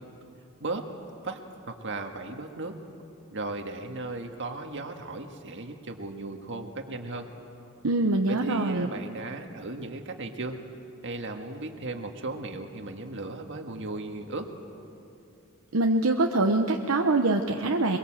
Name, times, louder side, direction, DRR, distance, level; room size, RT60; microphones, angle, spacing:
voice 1, 1.7-2.7 3.3-7.3 8.3-10.6 11.0-14.5, right 2 dB, 60° right, 4 dB, 1.8 m, -36 dB
voice 2, 7.8-8.9 15.7-18.0, right 2 dB, 75° right, 3 dB, 1.0 m, -24 dB
23.5 x 23.0 x 7.6 m, 2.7 s
head